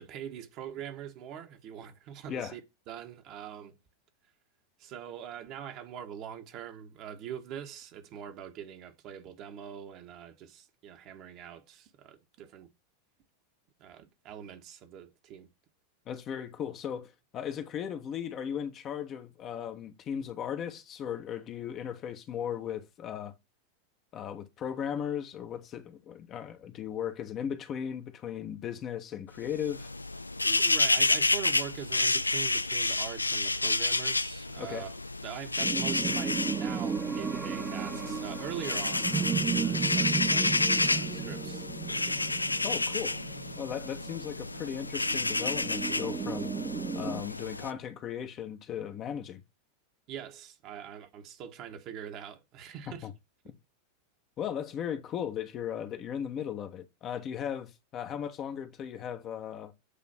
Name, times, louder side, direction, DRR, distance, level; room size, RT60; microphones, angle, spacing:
voice 1, 0.0-2.6 2.9-3.8 4.8-12.7 13.8-15.5 30.4-35.0 35.2-42.3 42.6-42.7 50.1-53.1, right 9 dB, 45° right, 1.4 m, -43 dB
voice 2, 16.1-23.3 24.1-29.9 34.6-34.9 42.6-43.2 43.6-46.5 46.9-49.4 53.0-53.1 54.4-59.7, left 9 dB, 35° left, 1.1 m, -37 dB
sound 1, 29.4-47.7, left 2 dB, 90° left, 0.4 m, -30 dB
sound 2, 35.6-47.2, right 6 dB, 20° right, 0.4 m, -34 dB
8.4 x 3.2 x 5.8 m
figure-of-eight pair, 90°, 0 cm